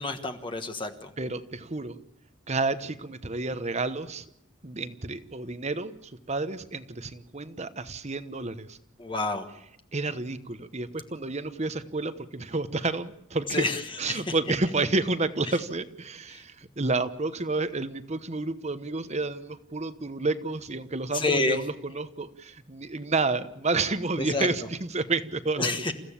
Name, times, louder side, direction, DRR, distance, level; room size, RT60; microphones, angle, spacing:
voice 1, 0.0-1.1 9.0-9.5 13.5-13.8 14.1-14.3 16.3-16.4 21.1-21.6 24.2-24.5 25.6-25.9, left 2 dB, 25° left, 6 dB, 1.4 m, -28 dB
voice 2, 1.2-2.0 2.5-4.2 4.6-8.8 9.9-13.7 14.0-25.8, right 3 dB, 35° right, 12 dB, 1.1 m, -30 dB
28.5 x 15.5 x 8.7 m, 0.78 s
head